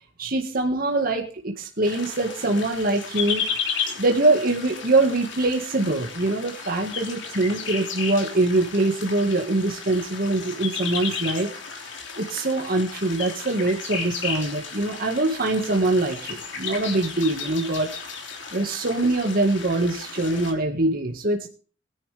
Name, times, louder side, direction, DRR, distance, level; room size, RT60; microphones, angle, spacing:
voice 1, 0.2-3.5 4.0-11.5 11.8-11.9 12.2-18.2 18.5-21.5, right 2 dB, 50° right, 2 dB, 1.9 m, -23 dB
sound 1, 1.8-20.5, left 6 dB, 65° left, 3.3 m, -34 dB
21.0 x 10.5 x 3.5 m, 0.40 s
head